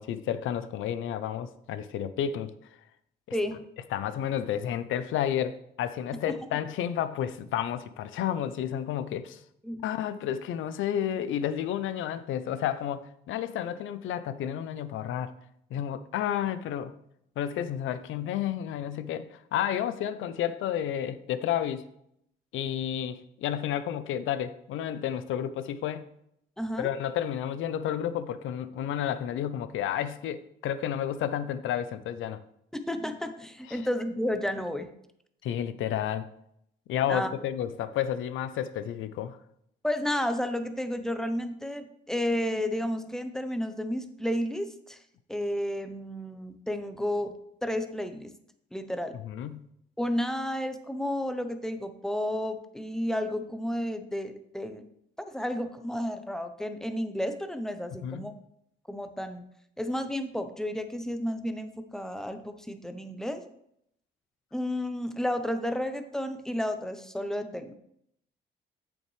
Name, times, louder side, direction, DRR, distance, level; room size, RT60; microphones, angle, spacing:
voice 1, 0.0-2.5 3.9-9.4 9.8-15.3 15.7-16.9 17.4-21.8 22.5-26.1 26.8-32.4 33.7-33.8 35.4-36.3 36.9-39.4 49.2-49.7 58.0-58.3, left 10 dB, 80° left, 0.6 m, -31 dB
voice 2, 3.3-3.7 6.3-6.4 9.6-9.8 26.6-26.9 32.9-34.9 37.1-37.3 39.8-45.0 45.3-48.3 48.7-49.1 50.0-54.8 55.3-58.3 58.9-59.4 59.8-63.4 64.5-67.7, left 1 dB, ahead, 0.8 m, -32 dB
8.2 x 7.1 x 3.3 m
cardioid pair, 90°, 20 cm